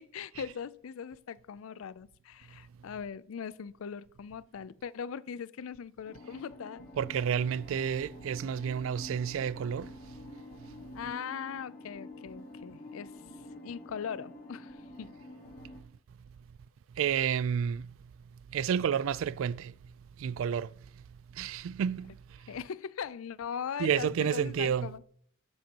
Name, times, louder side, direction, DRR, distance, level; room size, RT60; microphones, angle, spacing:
voice 1, 0.0-6.9 10.9-13.1 13.6-15.2 22.5-25.0, left 7 dB, 75° left, 0.4 m, -40 dB
sound 1, 6.1-15.8, left 1 dB, 40° left, 1.5 m, -48 dB
voice 2, 7.0-9.9 17.0-17.9 18.5-19.7 20.2-20.7 21.3-22.1 23.8-24.9, right 8 dB, 70° right, 0.3 m, -30 dB
13.0 x 7.8 x 2.9 m
head